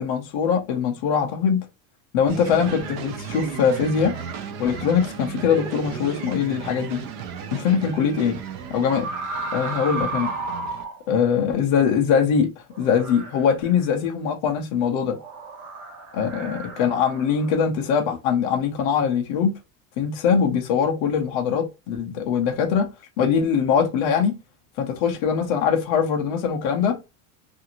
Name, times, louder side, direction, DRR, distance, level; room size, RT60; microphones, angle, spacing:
voice 1, 0.0-1.6 2.1-4.2 4.6-7.0 7.5-8.4 8.7-9.1 9.5-10.3 11.1-12.5 12.8-15.2 16.1-19.6 20.0-22.9 23.2-24.4 24.8-27.0, left 7 dB, 30° left, 0.3 m, -22 dB
sound 1, 2.3-10.8, right 7 dB, 45° right, 0.5 m, -36 dB
sound 2, 5.4-6.5 8.8-11.0 12.7-14.1 15.1-17.5, right 3 dB, 65° right, 1.4 m, -33 dB
2.5 x 2.5 x 2.8 m
supercardioid pair, 180°, 42 cm